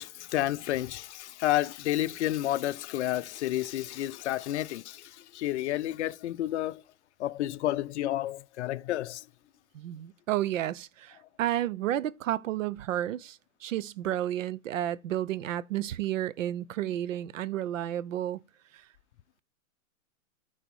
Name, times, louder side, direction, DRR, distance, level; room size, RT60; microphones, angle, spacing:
voice 1, 0.0-6.8 7.2-9.3, left 14 dB, 55° left, 0.6 m, -30 dB
voice 2, 9.7-18.4 18.7-18.8, right 12 dB, 70° right, 0.7 m, -31 dB
9.0 x 4.2 x 4.6 m
hypercardioid pair, 145°, 41 cm